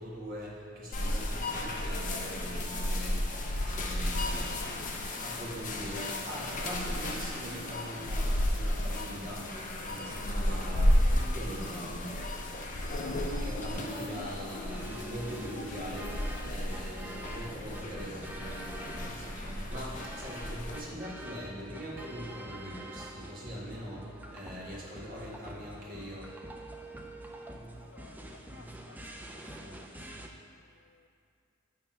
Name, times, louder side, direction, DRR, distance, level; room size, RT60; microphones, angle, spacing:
voice 1, 0.0-4.6 5.2-12.2 12.6-12.8 13.4-26.3, equal, 45° right, -5 dB, 1.5 m, -42 dB
sound 1, 0.9-20.8, left 1 dB, 40° left, 0.6 m, -33 dB
sound 2, 14.6-30.3, right 1 dB, 10° right, 0.4 m, -45 dB
voice 2, 27.4-29.0 29.6-29.9 30.2-30.3 30.8-31.1, left 6 dB, 85° left, 9 dB, 0.4 m, -59 dB
8.9 x 3.4 x 5.5 m, 2.4 s
head